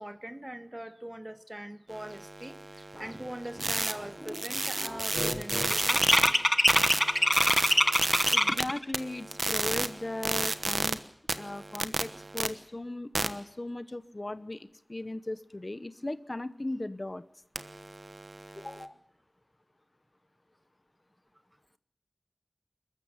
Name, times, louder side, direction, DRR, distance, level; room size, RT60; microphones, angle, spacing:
voice 1, 0.0-6.1, right 1 dB, 20° right, 1.2 m, -42 dB
sound 1, 1.9-6.3 6.7-8.6 8.9-10.9 11.3-12.5 13.1-13.3 17.6-18.8, right 2 dB, 60° right, 1.2 m, -32 dB
sound 2, 3.2-3.3 3.6-4.0 4.2-8.8, equal, 10° left, 1.0 m, -25 dB
voice 2, 8.3-11.0 11.4-17.2 18.6-19.0, left 2 dB, 40° left, 0.9 m, -38 dB
22.0 x 13.5 x 9.0 m
wide cardioid pair, 50°, 0 cm